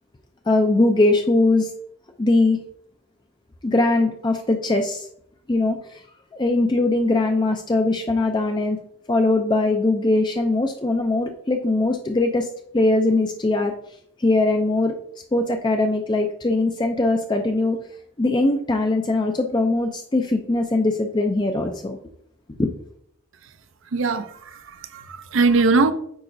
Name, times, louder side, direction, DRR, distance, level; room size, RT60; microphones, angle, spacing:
voice 1, 0.5-1.7 2.2-2.6 3.6-5.1 5.5-6.0 6.3-8.8 9.1-12.5 12.7-13.7 14.2-15.0 15.3-17.8 18.2-22.0 22.6-22.7, left 2 dB, 20° left, 0.4 m, -21 dB
voice 2, 23.9-25.9, right 3 dB, 70° right, 0.5 m, -21 dB
8.6 x 4.9 x 2.6 m
head